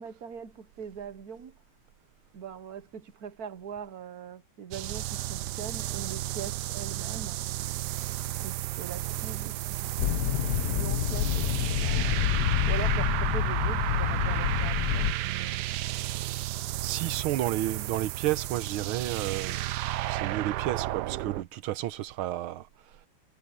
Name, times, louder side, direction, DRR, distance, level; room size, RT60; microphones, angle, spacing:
voice 1, 0.0-1.6 2.3-7.4 8.4-10.1 10.7-11.5 11.8-15.7, right 7 dB, 55° right, 1.4 m, -42 dB
sound 1, 4.7-21.4, right 15 dB, 75° right, 1.0 m, -32 dB
sound 2, 10.0-15.1, left 15 dB, 80° left, 0.9 m, -28 dB
voice 2, 16.8-19.7 20.1-23.1, right 14 dB, 90° right, 1.6 m, -32 dB
omnidirectional pair, 2.3 m